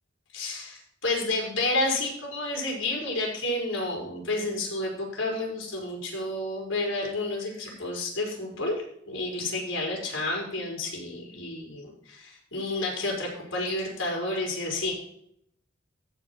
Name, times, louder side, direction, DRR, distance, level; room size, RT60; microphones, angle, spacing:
voice 1, 0.3-14.9, left 2 dB, 85° left, -1 dB, 5.0 m, -30 dB
14.0 x 5.2 x 5.6 m, 0.70 s
head